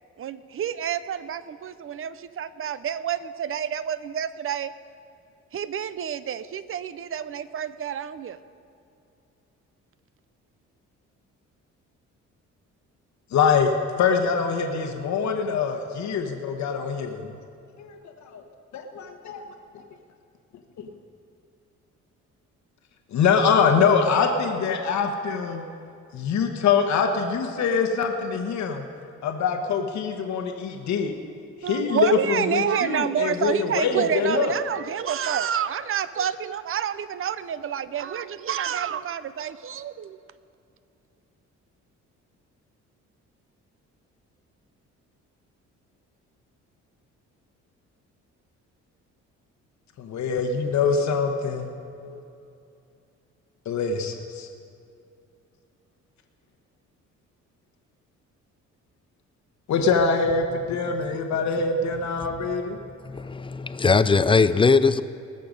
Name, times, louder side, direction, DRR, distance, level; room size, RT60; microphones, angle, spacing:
voice 1, 0.2-4.7 5.5-8.4 31.6-40.2, right 8 dB, 45° right, 0.6 m, -28 dB
voice 2, 13.3-13.7 14.0-17.3 17.8-18.0 18.3-18.4 18.7-19.4 20.8-20.9 23.1-25.6 26.1-28.9 29.2-31.1 31.6-34.5 50.0-51.7 52.0-52.2 53.6-54.5 59.7-62.8, left 5 dB, 70° left, 1.2 m, -24 dB
voice 3, 63.0-65.0, left 4 dB, 20° left, 0.4 m, -20 dB
19.5 x 6.7 x 5.2 m
cardioid pair, 90°, 30 cm